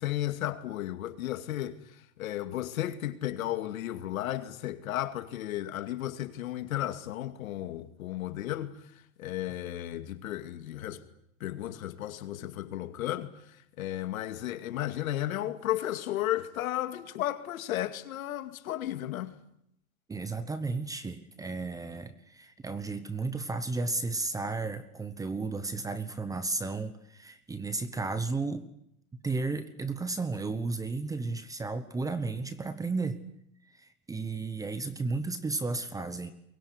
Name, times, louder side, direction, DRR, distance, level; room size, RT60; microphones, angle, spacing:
voice 1, 0.0-8.8 9.2-11.0 11.4-19.3, left 13 dB, 75° left, 2.5 m, -34 dB
voice 2, 20.1-28.6 29.2-33.2 33.7-36.3, right 3 dB, 10° right, 1.0 m, -33 dB
23.0 x 21.5 x 9.9 m
supercardioid pair, 150°, 42 cm